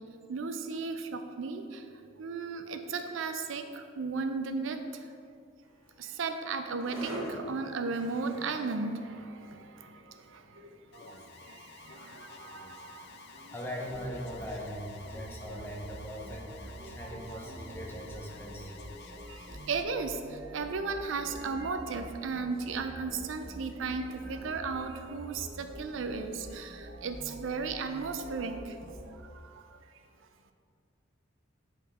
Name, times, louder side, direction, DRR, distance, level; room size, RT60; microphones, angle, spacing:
voice 1, 0.3-1.6 2.2-3.6 4.0-4.8 6.0-9.1 9.4-9.6 10.9-11.0 12.2-13.0 17.0-17.5 19.7-28.6, right 4 dB, 75° right, 7 dB, 0.5 m, -35 dB
sound 1, 5.6-16.7, equal, 90° right, 1.4 m, -48 dB
Alarm, 10.9-19.8, left 3 dB, 55° left, 0.5 m, -51 dB
voice 2, 13.5-18.7, equal, 10° left, -2 dB, 0.8 m, -40 dB
sound 2, 13.9-29.1, right 1 dB, 50° right, 1.5 m, -47 dB
7.4 x 3.8 x 4.1 m, 2.3 s
head